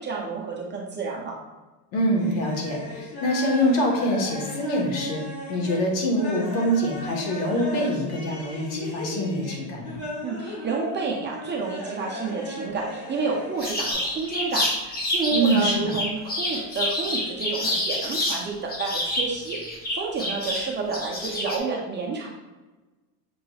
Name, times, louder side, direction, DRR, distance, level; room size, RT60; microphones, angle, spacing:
voice 1, 0.0-1.3 10.2-19.6 19.9-22.3, right 4 dB, 25° right, -2 dB, 0.4 m, -30 dB
voice 2, 1.9-5.2 5.5-10.0 15.3-15.9, equal, 75° left, 1 dB, 1.3 m, -25 dB
sound 1, 2.2-13.9, left 1 dB, 55° left, 1.3 m, -36 dB
sound 2, 13.6-18.4 18.7-21.6, left 1 dB, 20° left, 0.7 m, -27 dB
6.0 x 3.0 x 2.3 m, 1.2 s
cardioid pair, 130°, 49 cm